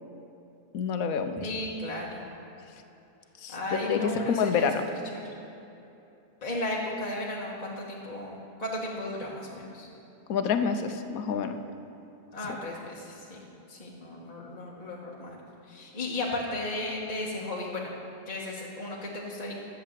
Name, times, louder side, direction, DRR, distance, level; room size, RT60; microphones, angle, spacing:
voice 1, 0.7-1.4 3.4-4.9 10.3-11.6 12.5-12.6, left 6 dB, 65° left, 8 dB, 1.1 m, -28 dB
voice 2, 1.4-2.2 3.5-4.8 5.1-5.3 6.4-9.9 12.3-13.4 13.7-15.4 15.7-18.0 18.3-19.5, left 1 dB, 25° left, -4 dB, 1.3 m, -35 dB
12.0 x 7.6 x 7.5 m, 2.9 s
omnidirectional pair, 1.7 m